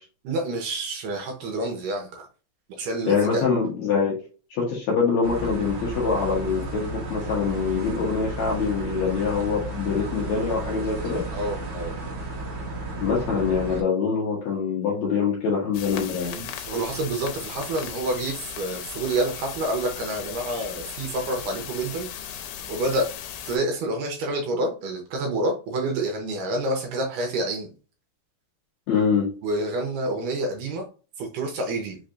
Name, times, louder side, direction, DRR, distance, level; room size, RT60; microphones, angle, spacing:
voice 1, 0.2-2.3 2.8-3.4 11.3-11.9 16.4-23.1 23.5-27.7 29.4-30.9 31.2-32.0, right 1 dB, 75° right, 2 dB, 2.2 m, -28 dB
voice 2, 3.1-4.2 4.5-11.2 13.0-16.3 28.9-29.3, left 5 dB, 65° left, -3 dB, 1.9 m, -24 dB
sound 1, 5.2-13.8, right 2 dB, 45° right, 1.2 m, -33 dB
sound 2, 15.7-23.6, left 9 dB, 85° left, 2.6 m, -37 dB
5.6 x 3.2 x 2.6 m, 0.36 s
omnidirectional pair, 4.3 m